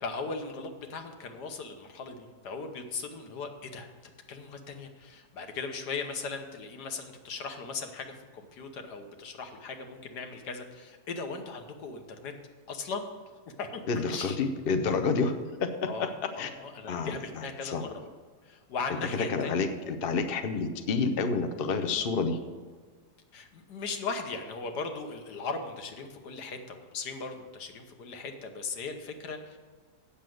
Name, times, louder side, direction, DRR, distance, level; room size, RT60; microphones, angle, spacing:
voice 1, 0.0-3.9 4.3-12.3 12.7-13.1 13.6-14.4 15.8-17.9 18.4-19.7 23.3-29.6, left 4 dB, 75° left, 5 dB, 1.6 m, -38 dB
voice 2, 13.9-15.3 15.6-16.1 16.4-16.5 16.9-17.8 19.3-22.4, left 4 dB, 50° left, 7 dB, 0.7 m, -29 dB
8.5 x 7.0 x 7.7 m, 1.4 s
omnidirectional pair, 1.8 m